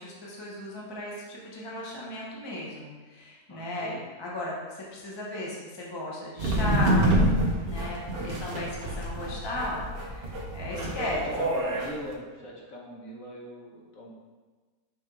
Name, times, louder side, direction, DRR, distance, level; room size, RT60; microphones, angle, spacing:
voice 1, 0.0-3.9 4.2-7.0 7.6-9.8 10.1-11.3 11.7-11.8, left 1 dB, 20° left, -4 dB, 0.7 m, -36 dB
voice 2, 3.5-4.0 10.7-14.1, equal, 55° left, -3 dB, 1.3 m, -40 dB
sound 1, 6.4-11.9, right 1 dB, 50° right, 0.7 m, -27 dB
6.0 x 4.4 x 3.7 m, 1.3 s
omnidirectional pair, 1.9 m